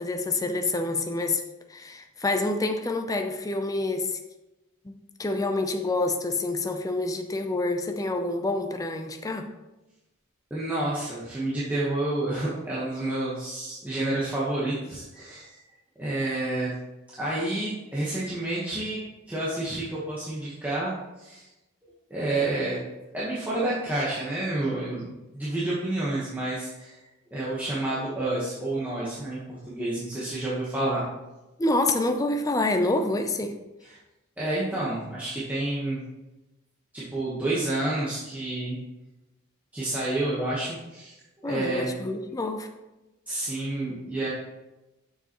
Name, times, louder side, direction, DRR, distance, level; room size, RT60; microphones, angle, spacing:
voice 1, 0.0-1.4 1.7-4.2 4.8-9.5 31.6-33.5 41.4-42.7, left 2 dB, 15° left, 6 dB, 0.4 m, -27 dB
voice 2, 10.5-15.6 16.0-16.7 17.2-19.0 19.3-21.5 22.1-22.8 23.1-25.0 25.3-27.0 27.3-31.0 33.9-34.0 34.4-36.0 36.9-38.8 39.7-41.1 41.4-42.0 43.3-44.3, right 2 dB, 10° right, -9 dB, 1.2 m, -29 dB
6.8 x 6.8 x 3.0 m, 1.0 s
head